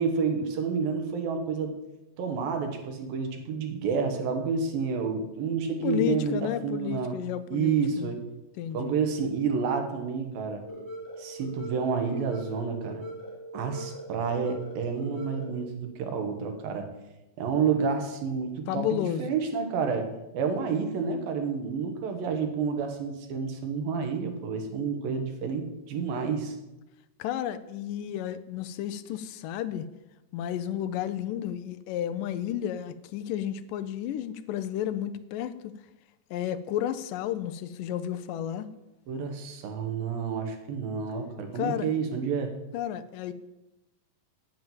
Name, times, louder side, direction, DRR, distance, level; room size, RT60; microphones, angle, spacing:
voice 1, 0.0-1.7 2.2-7.2 7.5-8.2 8.7-10.6 11.2-13.0 13.5-16.9 17.4-26.6 39.1-42.5, right 5 dB, 90° right, 5 dB, 3.2 m, -29 dB
voice 2, 5.8-8.1 8.6-9.0 18.7-19.4 27.2-29.9 30.3-35.7 36.3-38.7 41.6-41.9 42.7-43.3, left 11 dB, 80° left, 11 dB, 2.1 m, -32 dB
sound 1, 10.6-15.6, right 1 dB, 5° right, 4.0 m, -41 dB
9.2 x 8.9 x 7.2 m, 0.99 s
omnidirectional pair, 4.0 m